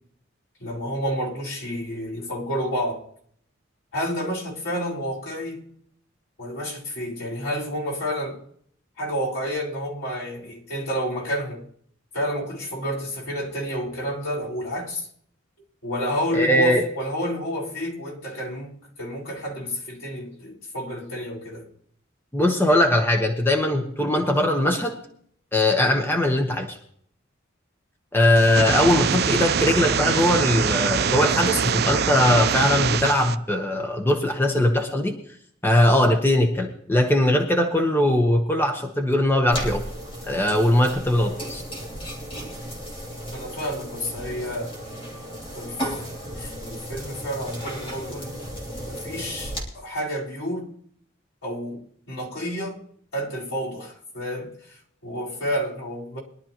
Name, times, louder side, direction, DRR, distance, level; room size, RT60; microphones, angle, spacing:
voice 1, 0.6-3.0 3.9-5.7 6.4-8.4 9.0-11.7 12.1-15.1 15.8-21.7 43.3-44.8 45.5-45.8 46.2-48.4 48.9-50.7 51.4-52.8 53.1-56.2, equal, 75° left, 4.4 m, -30 dB
voice 2, 16.3-16.8 22.3-25.0 25.5-26.8 28.1-35.1 35.6-39.8 40.3-41.6, left 1 dB, 10° left, 1.0 m, -20 dB
sound 1, 28.3-33.3, right 6 dB, 50° right, 0.5 m, -23 dB
sound 2, 39.5-49.6, equal, 25° left, 3.0 m, -35 dB
22.0 x 11.5 x 3.0 m
head